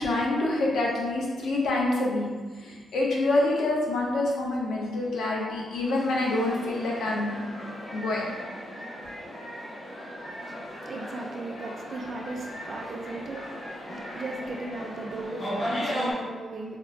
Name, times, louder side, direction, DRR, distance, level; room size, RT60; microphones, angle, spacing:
voice 1, 0.0-2.3 2.6-7.5 7.9-8.3, left 2 dB, 85° left, -2 dB, 0.7 m, -26 dB
sound 1, 6.4-16.1, equal, 50° left, 1.4 m, -36 dB
voice 2, 10.2-16.8, right 2 dB, 45° right, 1 dB, 0.3 m, -38 dB
4.3 x 2.1 x 2.6 m, 1.4 s
wide cardioid pair, 160°, 0 cm